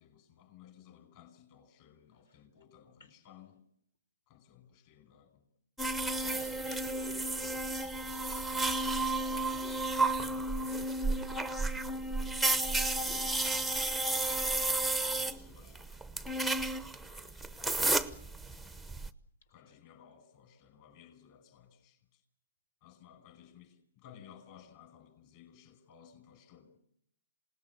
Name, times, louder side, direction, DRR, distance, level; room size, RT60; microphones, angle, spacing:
voice 1, 0.0-3.7 4.3-5.5 6.2-6.5 12.0-13.7 14.0-16.5 16.9-18.0 19.5-22.2 22.8-26.8, left 9 dB, 40° left, 5.4 m, -59 dB
sound 1, 5.8-19.1, right 2 dB, ahead, 0.8 m, -32 dB
voice 2, 6.0-10.8 11.2-11.7 19.6-19.8, left 3 dB, 75° left, 5.1 m, -61 dB
27.5 x 18.5 x 7.3 m
hypercardioid pair, 145°, 0 cm